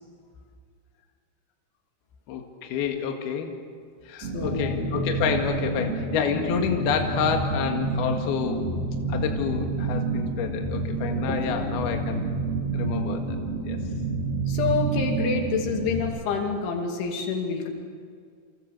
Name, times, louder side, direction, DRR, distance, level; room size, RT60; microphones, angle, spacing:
voice 1, 2.3-3.5 4.1-8.7 9.1-12.4 12.7-13.4 13.7-13.8, left 7 dB, 65° left, 3 dB, 3.5 m, -28 dB
voice 2, 4.2-4.8 11.3-11.6 14.5-17.7, left 5 dB, 90° left, 2 dB, 5.1 m, -28 dB
sound 1, 4.2-16.0, right 3 dB, 50° right, 5.3 m, -29 dB
29.0 x 28.0 x 6.6 m, 2.1 s
omnidirectional pair, 5.3 m